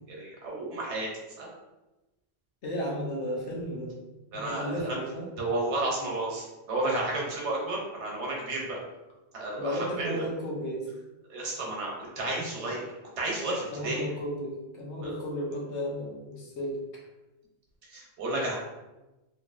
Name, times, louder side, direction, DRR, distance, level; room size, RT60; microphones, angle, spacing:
voice 1, 0.1-1.1 1.4-1.5 4.3-5.0 5.4-8.8 9.3-10.2 11.3-14.1 15.0-15.1 17.9-18.6, right 2 dB, 90° right, -2 dB, 1.1 m, -32 dB
voice 2, 2.6-3.9 4.3-5.3 9.6-10.9 13.7-16.8, equal, 80° left, -3 dB, 1.1 m, -34 dB
3.0 x 2.6 x 2.4 m, 1.1 s
omnidirectional pair, 1.1 m